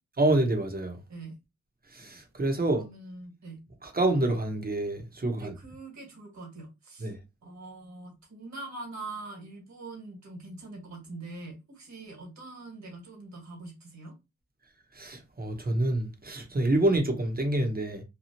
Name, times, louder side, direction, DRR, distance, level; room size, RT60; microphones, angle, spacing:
voice 1, 0.2-1.0 1.9-2.8 3.8-5.5 7.0-7.2 14.9-18.0, right 2 dB, 30° right, 1.0 m, -27 dB
voice 2, 2.7-3.6 5.3-7.1 7.4-14.1, right 2 dB, 65° right, 1.6 m, -43 dB
2.9 x 2.3 x 2.8 m
cardioid pair, 50°, 30 cm